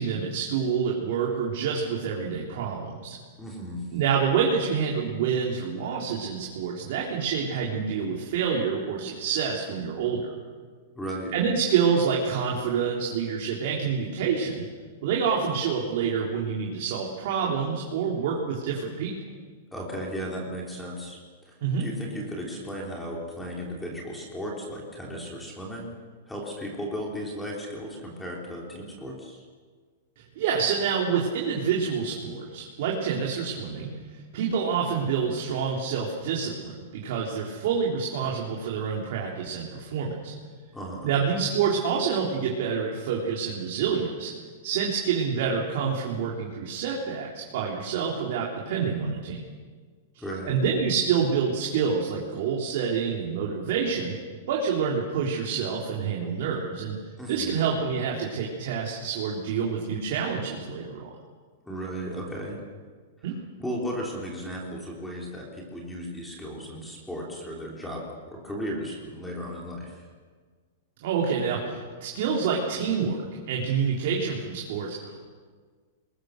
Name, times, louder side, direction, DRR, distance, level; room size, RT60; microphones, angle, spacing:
voice 1, 0.0-3.2 3.9-10.3 11.3-14.6 15.0-19.1 21.6-21.9 30.4-33.9 34.3-40.3 41.0-44.3 44.6-49.4 50.1-54.1 54.5-57.0 57.3-61.1 63.2-63.4 71.0-75.2, right 6 dB, 50° right, -2 dB, 3.7 m, -27 dB
voice 2, 3.4-3.8 10.9-11.3 19.7-21.2 21.5-25.9 26.3-29.4 40.7-41.1 49.0-49.1 50.2-50.6 57.2-57.6 61.6-62.6 63.6-70.0, equal, 5° left, -2 dB, 3.3 m, -35 dB
27.5 x 21.5 x 6.7 m, 1.5 s
supercardioid pair, 170°, 0 cm